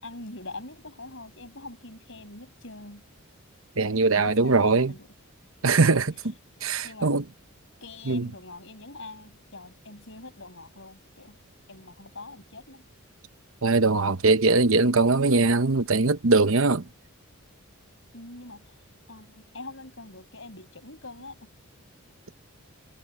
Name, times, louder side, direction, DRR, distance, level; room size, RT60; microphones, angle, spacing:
voice 1, 0.0-3.0 4.1-5.1 5.7-6.1 6.8-7.1 7.8-11.4 11.7-12.8 18.1-18.7 19.1-21.5, left 2 dB, 60° left, 6.4 m, -43 dB
voice 2, 3.8-4.9 5.6-6.0 6.6-7.2 8.1-8.3 13.6-16.8, right 3 dB, 70° right, 1.0 m, -21 dB
head